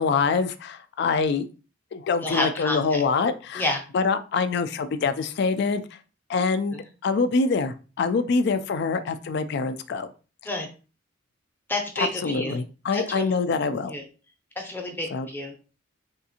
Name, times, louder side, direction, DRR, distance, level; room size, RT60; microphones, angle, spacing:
voice 1, 0.0-1.5 1.9-3.7 3.9-5.8 6.3-10.1 12.0-14.0 15.1-15.3, left 4 dB, 55° left, 11 dB, 0.3 m, -25 dB
voice 2, 2.2-3.0 3.5-3.8 6.7-6.8 10.4-10.7 11.7-12.6 12.9-13.3 13.9-14.0 14.6-15.5, left 1 dB, 10° left, 2 dB, 0.6 m, -29 dB
3.5 x 2.4 x 2.8 m, 0.34 s
head